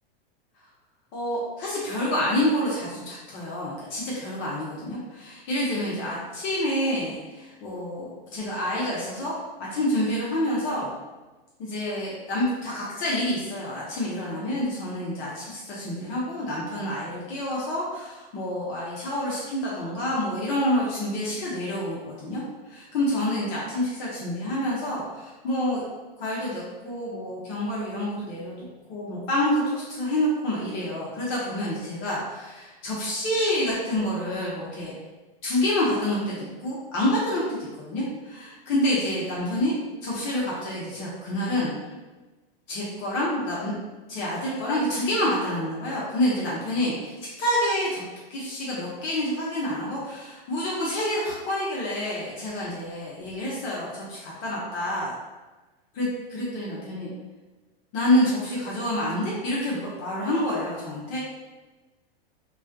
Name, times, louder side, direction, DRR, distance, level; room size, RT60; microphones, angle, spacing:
voice 1, 1.1-9.4 9.7-10.9 11.6-25.8 26.2-34.9 35.4-39.7 40.0-41.7 42.7-43.7 44.1-47.1 47.4-48.0 48.3-55.1 56.0-57.1 57.9-61.2, left 1 dB, 40° left, -6 dB, 0.7 m, -28 dB
2.3 x 2.1 x 2.5 m, 1.2 s
hypercardioid pair, 110°, 30 cm